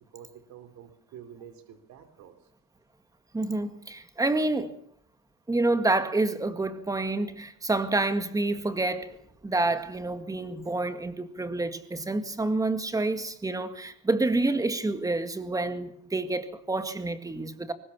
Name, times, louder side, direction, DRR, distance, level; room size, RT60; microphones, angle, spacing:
voice 1, 0.1-2.4, right 9 dB, 70° right, 3.5 m, -48 dB
voice 2, 3.3-4.7 5.5-9.1 9.4-17.7, right 2 dB, 10° right, 1.9 m, -28 dB
23.0 x 20.0 x 7.2 m
cardioid pair, 145°, 29 cm